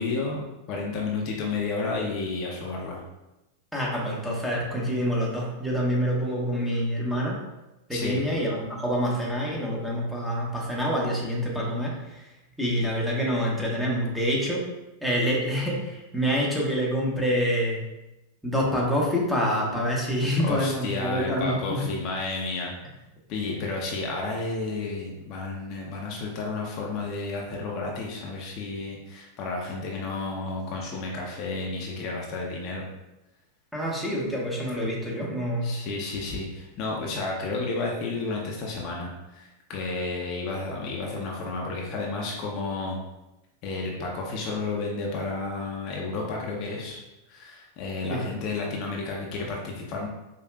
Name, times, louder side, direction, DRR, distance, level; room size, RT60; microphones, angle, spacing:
voice 1, 0.0-3.0 7.9-8.2 20.4-22.8 23.3-32.9 35.6-43.0 43.6-47.0 47.3-50.1, left 3 dB, 45° left, -1 dB, 0.7 m, -31 dB
voice 2, 3.7-7.4 7.9-12.2 12.6-14.6 15.0-17.8 18.4-21.8 33.7-35.7 48.0-48.2, equal, ahead, -4 dB, 1.0 m, -26 dB
5.2 x 2.4 x 2.3 m, 0.98 s
hypercardioid pair, 105°, 0 cm